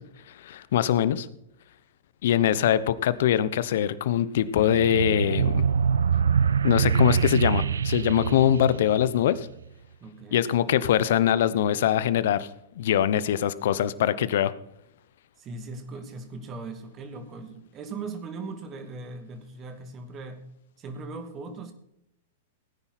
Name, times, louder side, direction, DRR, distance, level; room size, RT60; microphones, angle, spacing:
voice 1, 0.4-1.3 2.2-5.7 6.6-9.5 10.3-12.5 12.8-14.5, left 10 dB, 65° left, 16 dB, 0.9 m, -23 dB
sound 1, 4.6-9.5, right 6 dB, 80° right, 0.4 m, -24 dB
voice 2, 10.0-10.5 15.4-20.4 20.8-21.7, right 3 dB, 30° right, 8 dB, 2.5 m, -39 dB
18.0 x 9.8 x 4.3 m, 0.79 s
hypercardioid pair, 110°, 0 cm